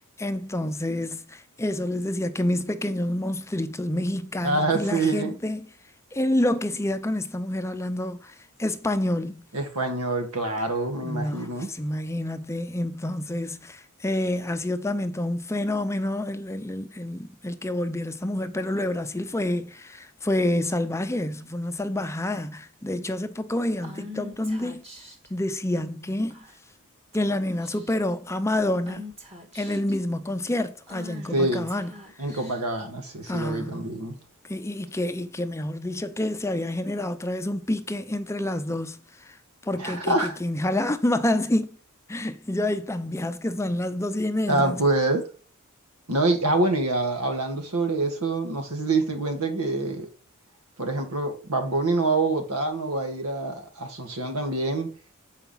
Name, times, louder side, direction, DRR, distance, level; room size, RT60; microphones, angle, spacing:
voice 1, 0.2-5.7 6.1-9.4 11.0-24.8 25.3-26.4 27.1-29.1 29.5-31.9 33.3-33.9 34.5-39.0 39.3-39.4 39.6-41.7 42.1-44.8, left 1 dB, 15° left, 0.6 m, -28 dB
voice 2, 4.4-5.4 9.5-11.7 31.3-31.7 32.2-34.2 39.7-40.4 44.5-45.3 46.1-50.1 50.8-54.9, right 2 dB, 90° right, 2.1 m, -26 dB
Female speech woman speaking / Whispering, 23.8-25.3 26.3-26.7 27.1-27.3 27.6-28.1 28.9-30.0 30.9-32.8, left 2 dB, 30° right, 1.9 m, -43 dB
8.2 x 4.9 x 5.6 m
head